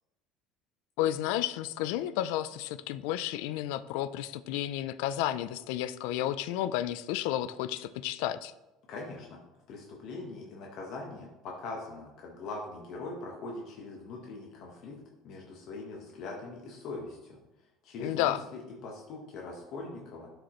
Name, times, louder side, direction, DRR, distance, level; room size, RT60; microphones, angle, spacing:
voice 1, 1.0-8.5 18.0-18.4, left 12 dB, 75° left, 14 dB, 0.4 m, -32 dB
voice 2, 8.9-9.4 9.7-15.0 15.2-17.4 17.8-20.3, left 3 dB, 45° left, -1 dB, 1.2 m, -41 dB
12.5 x 4.9 x 3.1 m, 1.0 s
cardioid pair, 175°, 0 cm